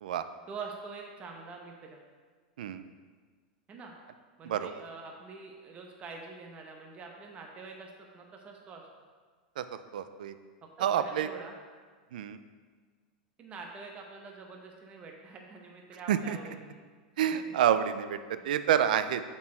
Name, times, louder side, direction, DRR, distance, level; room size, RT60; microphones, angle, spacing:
voice 1, 0.5-2.0 3.7-3.9 4.4-8.8 10.8-11.6 13.4-16.8 17.3-17.6 18.4-18.5, right 4 dB, 30° right, 1 dB, 0.9 m, -45 dB
voice 2, 9.9-10.3 10.8-11.3 12.1-12.4 16.1-16.4 17.2-18.2 18.4-19.2, right 9 dB, 75° right, 11 dB, 0.4 m, -28 dB
7.0 x 4.5 x 4.4 m, 1.5 s
hypercardioid pair, 105°, 5 cm